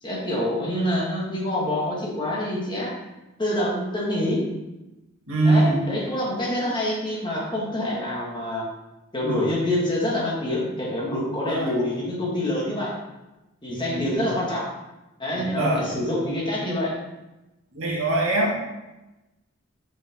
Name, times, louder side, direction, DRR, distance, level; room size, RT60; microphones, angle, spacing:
voice 1, 0.0-2.9 3.4-4.5 5.4-8.7 9.1-13.0 13.6-14.7 15.2-17.0, left 1 dB, 20° left, -4 dB, 1.9 m, -26 dB
voice 2, 5.3-5.8 11.5-11.7 13.7-14.2 15.4-16.0 17.7-18.6, right 2 dB, 70° right, -3 dB, 2.1 m, -23 dB
6.4 x 6.2 x 3.7 m, 1.0 s
head